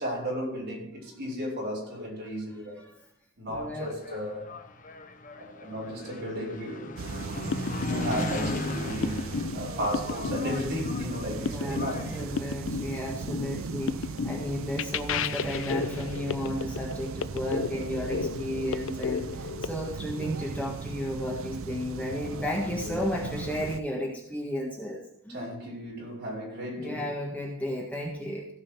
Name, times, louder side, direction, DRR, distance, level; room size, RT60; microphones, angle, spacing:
voice 1, 0.0-2.8 3.4-4.5 5.4-7.0 7.5-12.2 17.7-17.9 22.3-23.1 25.3-27.1, equal, 50° right, 5.2 m, -35 dB
voice 2, 3.5-3.8 11.5-11.8 12.1-25.4 26.7-28.5, left 1 dB, 10° left, 1.5 m, -33 dB
Engine, 3.6-12.4, left 2 dB, 40° left, 0.8 m, -38 dB
sound 1, 7.0-23.8, right 4 dB, 70° right, 0.5 m, -38 dB
sound 2, 7.2-19.7, left 5 dB, 65° left, 0.5 m, -33 dB
16.0 x 5.5 x 5.9 m
head